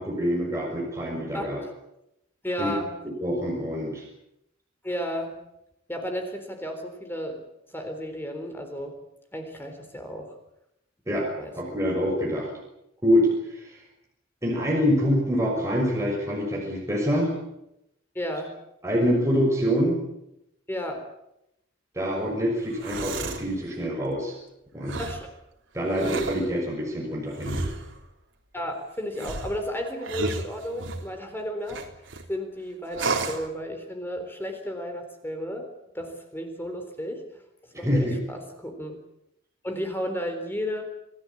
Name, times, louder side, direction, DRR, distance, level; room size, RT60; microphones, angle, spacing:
voice 1, 0.0-1.6 2.6-2.7 3.2-4.0 11.1-11.3 11.5-12.5 13.0-13.8 14.4-17.3 18.8-20.0 21.9-24.3 24.7-25.0 25.7-27.7 37.8-38.2, equal, 15° right, -1 dB, 6.2 m, -25 dB
voice 2, 2.4-2.9 4.8-5.4 5.9-7.4 7.7-8.9 9.3-10.3 11.4-11.5 18.1-18.5 20.7-21.0 25.0-25.3 28.5-31.8 32.3-35.7 35.9-37.2 37.8-39.0 39.6-40.8, equal, 10° left, 5 dB, 3.8 m, -33 dB
sound 1, 22.6-23.5 24.8-25.3 25.9-26.5 27.4-28.0 29.1-31.1 31.7-32.2 32.9-33.5, right 3 dB, 70° right, 3.6 m, -32 dB
27.5 x 18.0 x 8.7 m, 0.85 s
head